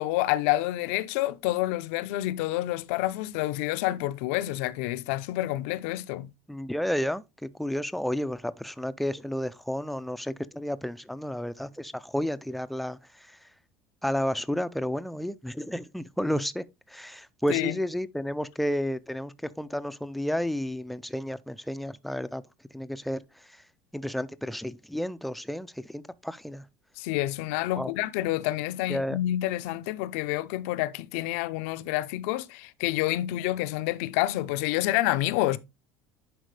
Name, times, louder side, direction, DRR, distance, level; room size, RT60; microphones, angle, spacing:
voice 1, 0.0-6.3 17.5-17.8 27.0-35.6, left 16 dB, 80° left, 0.6 m, -28 dB
voice 2, 6.5-7.2 7.6-13.4 14.0-22.4 22.7-23.2 23.9-26.6 27.8-27.9 28.9-29.2, equal, ahead, 0.4 m, -31 dB
10.5 x 4.4 x 3.2 m
cardioid pair, 145°, 7 cm